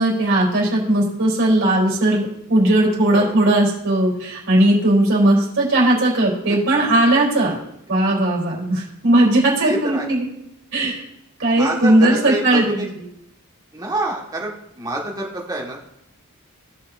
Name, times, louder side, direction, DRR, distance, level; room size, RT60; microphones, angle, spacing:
voice 1, 0.0-7.5 7.9-10.2 10.7-11.0 11.4-12.9, right 1 dB, 60° right, -4 dB, 3.5 m, -17 dB
voice 2, 9.6-10.1 11.5-12.9 13.7-15.8, right 2 dB, 20° right, -2 dB, 1.6 m, -27 dB
17.0 x 5.8 x 2.6 m, 0.79 s
head